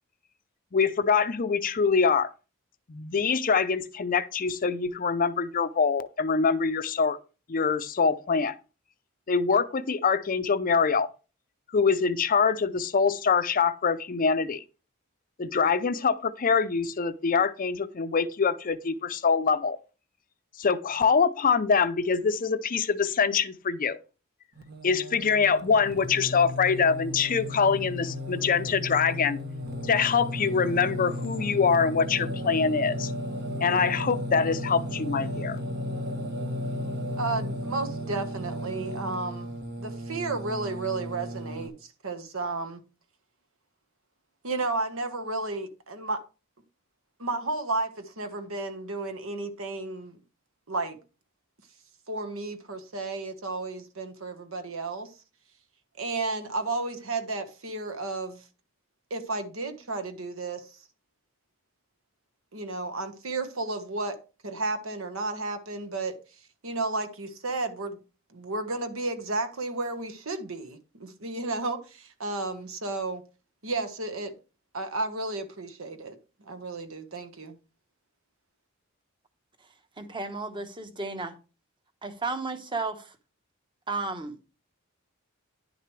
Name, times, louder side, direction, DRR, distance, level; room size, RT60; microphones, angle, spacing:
voice 1, 0.7-2.3 2.9-7.2 7.5-8.5 9.3-11.1 11.7-14.6 15.4-19.8 20.6-24.0 24.8-29.4 29.8-33.1 33.6-35.6, left 5 dB, 40° left, 0.5 m, -24 dB
Singing, 24.6-41.7, equal, 50° right, 1.1 m, -34 dB
voice 2, 37.2-39.5 39.8-42.8 44.4-46.2 47.2-50.2 50.7-51.0 52.1-55.1 56.0-58.4 59.1-60.8 62.5-64.2 64.4-66.2 66.6-68.0 68.3-73.2 73.6-74.3 74.7-77.6, right 3 dB, 75° right, 1.3 m, -32 dB
voice 3, 80.0-81.3 82.0-83.1 83.9-84.4, right 3 dB, 25° right, 1.1 m, -33 dB
10.5 x 6.7 x 3.2 m
head